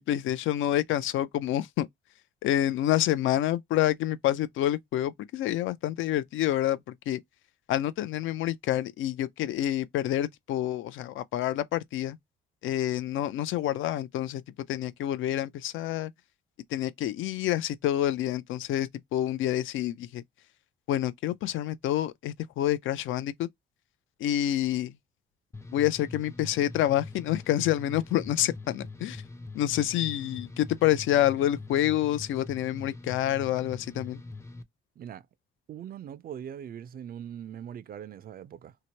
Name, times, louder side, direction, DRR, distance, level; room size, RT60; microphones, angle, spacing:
voice 1, 0.0-1.9 2.4-7.2 7.7-12.2 12.6-14.4 14.7-16.1 16.7-20.2 20.9-23.5 24.2-25.0 25.7-29.2 29.5-34.2, left 13 dB, 80° left, 0.5 m, -28 dB
sound 1, 25.5-34.6, left 2 dB, 15° left, 0.5 m, -43 dB
voice 2, 35.0-35.3 35.7-38.8, right 9 dB, 50° right, 0.4 m, -41 dB
2.9 x 2.1 x 2.8 m
cardioid pair, 90°, 20 cm